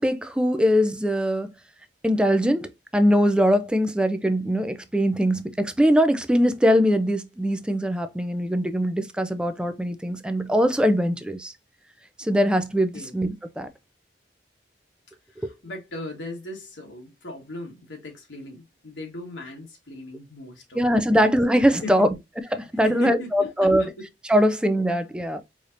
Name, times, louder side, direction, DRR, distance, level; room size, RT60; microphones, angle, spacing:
voice 1, 0.0-1.5 2.0-11.5 12.2-13.7 15.4-15.5 20.7-22.1 22.5-23.8 24.3-25.4, equal, 5° right, 0.4 m, -22 dB
voice 2, 15.3-20.8 21.1-21.2 21.8-22.1 22.7-24.1, left 2 dB, 90° left, 1.4 m, -38 dB
4.9 x 2.7 x 2.5 m
head